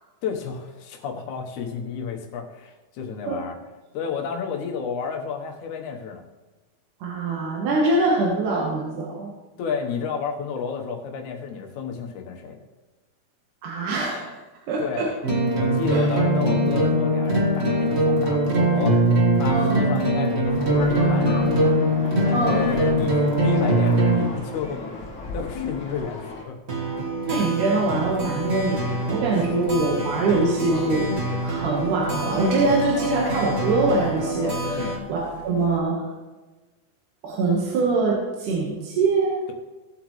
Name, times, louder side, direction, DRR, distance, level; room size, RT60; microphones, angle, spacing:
voice 1, 0.2-3.6 3.9-6.2 9.6-12.6 14.8-15.1 15.6-19.0 19.3-21.8 22.2-24.8 25.3-26.6 29.4-29.5 34.7-35.0, left 6 dB, 70° left, 3 dB, 2.5 m, -31 dB
voice 2, 7.0-9.3 13.6-14.4 14.7-15.1 15.9-16.2 19.5-19.8 22.3-22.6 27.2-31.2 31.4-36.1 37.2-39.4, right 3 dB, 80° right, -3 dB, 2.9 m, -23 dB
sound 1, 15.2-24.3 26.7-35.0, right 1 dB, 35° right, 1.0 m, -23 dB
sound 2, 20.4-26.4, left 2 dB, 45° left, 2.1 m, -36 dB
sound 3, 28.0-35.8, left 4 dB, 90° left, 3.0 m, -39 dB
18.0 x 7.9 x 3.2 m, 1.2 s
omnidirectional pair, 3.6 m